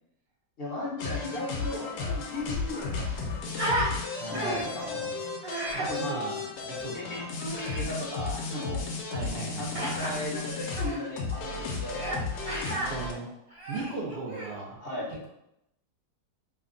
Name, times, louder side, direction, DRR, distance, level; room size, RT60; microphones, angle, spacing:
voice 1, 0.6-3.6 4.3-5.1 5.8-6.4 6.9-7.2 7.6-8.9 9.6-12.7 14.8-15.1, left 1 dB, 45° left, -4 dB, 0.8 m, -37 dB
sound 1, 1.0-13.1, left 4 dB, 80° left, 1.3 m, -34 dB
Human voice, 2.0-2.1 2.3-3.9 4.3-4.8 5.4-5.9 7.4-7.9 9.7-10.1 10.7-11.0 11.9-12.2 12.4-12.9 13.5-14.6, right 1 dB, 60° right, 1.4 m, -33 dB
voice 2, 4.2-5.1 5.7-6.4 6.7-7.2 9.1-10.0 12.7-13.3 13.7-14.8, right 3 dB, 75° right, -2 dB, 0.5 m, -38 dB
3.3 x 2.2 x 3.7 m, 0.82 s
omnidirectional pair, 1.9 m